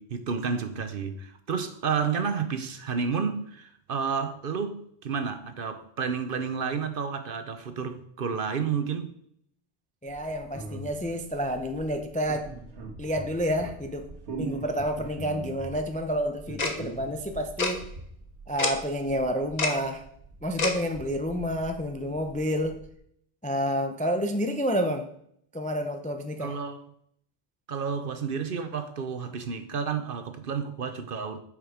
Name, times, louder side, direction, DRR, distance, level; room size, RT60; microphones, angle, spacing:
voice 1, 0.0-9.1 26.4-26.8 27.7-31.4, right 6 dB, 55° right, 0.9 m, -31 dB
voice 2, 10.0-12.5 13.0-14.1 14.3-17.9 18.5-20.0 20.4-22.8 23.4-25.1 25.5-26.5, equal, 10° left, 0.4 m, -29 dB
sound 1, 10.1-22.9, right 3 dB, 85° right, 1.6 m, -42 dB
Tick-tock, 16.6-16.7 17.6-17.7 18.6-18.7 19.6-19.7 20.6-20.7, left 4 dB, 40° left, 1.0 m, -25 dB
7.9 x 5.0 x 5.0 m
omnidirectional pair, 1.1 m